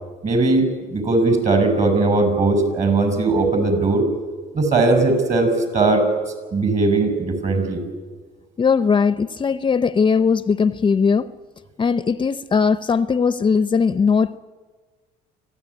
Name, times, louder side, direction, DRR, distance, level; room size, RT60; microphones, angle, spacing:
voice 1, 0.2-4.1 4.5-6.1 6.5-7.8, right 3 dB, 40° right, 6.2 m, -19 dB
voice 2, 8.6-11.3 11.8-14.4, left 5 dB, 30° left, 0.7 m, -19 dB
25.5 x 16.0 x 9.8 m
cardioid pair, 110°, 17 cm